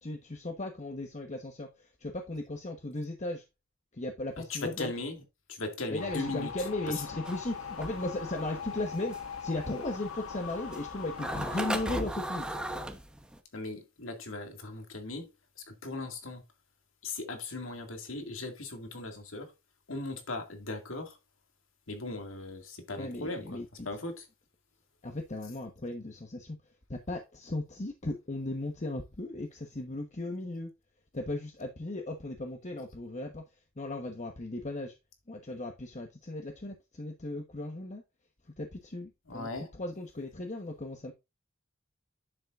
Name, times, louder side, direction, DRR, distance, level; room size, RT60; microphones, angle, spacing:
voice 1, 0.0-3.4 3.9-4.9 5.9-12.5 23.0-23.9 25.0-26.6 26.9-30.7 31.1-33.4 33.8-34.9 35.3-38.0 38.6-41.1, left 2 dB, 35° left, 1.1 m, -37 dB
voice 2, 4.4-5.2 5.5-7.1 13.5-15.3 15.7-16.4 17.0-19.5 19.9-21.2 21.9-23.6 23.8-24.3 25.4-25.5 39.3-39.7, left 2 dB, 70° left, 2.2 m, -38 dB
sound 1, 6.0-12.0, left 6 dB, 90° left, 1.1 m, -41 dB
sound 2, 7.2-13.4, right 1 dB, 5° right, 1.0 m, -36 dB
9.8 x 7.4 x 2.5 m
head